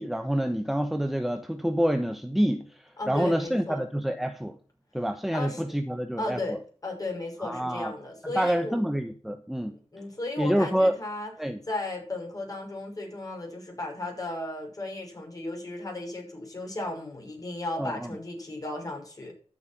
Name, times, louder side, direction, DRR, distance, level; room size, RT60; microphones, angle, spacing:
voice 1, 0.0-4.6 4.9-6.4 7.4-7.9 8.3-9.8 10.4-10.9 11.4-11.6 17.8-18.1, equal, ahead, 1.0 m, -27 dB
voice 2, 3.0-3.8 5.3-5.6 6.2-8.8 9.9-11.3 11.7-19.3, left 2 dB, 30° left, 5.9 m, -35 dB
12.0 x 7.6 x 5.9 m
wide cardioid pair, 85°, 12 cm